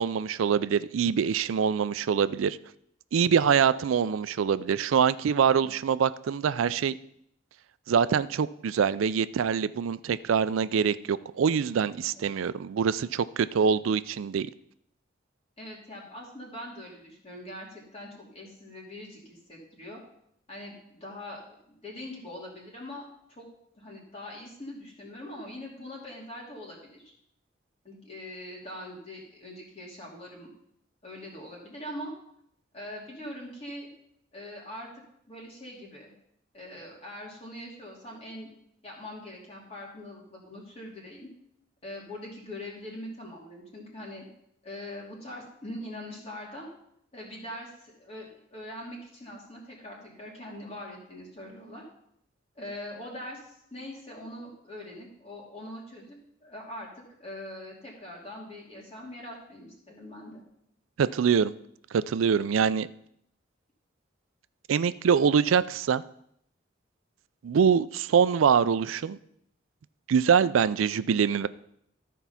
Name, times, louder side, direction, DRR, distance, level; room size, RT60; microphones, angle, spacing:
voice 1, 0.0-2.6 3.1-7.0 7.9-14.5 61.0-61.5 61.9-62.9 64.7-66.0 67.4-69.2 70.1-71.5, right 7 dB, 90° right, 16 dB, 0.4 m, -24 dB
voice 2, 15.6-20.0 20.5-21.4 21.7-23.0 23.3-23.5 23.7-27.1 27.8-30.5 31.0-32.1 32.7-33.9 34.3-34.9 35.3-36.1 36.5-38.5 38.8-41.3 41.8-44.2 44.6-46.7 47.1-51.8 52.5-56.9 57.2-60.4, left 1 dB, 30° left, -2 dB, 2.7 m, -42 dB
13.5 x 4.6 x 5.7 m, 0.73 s
head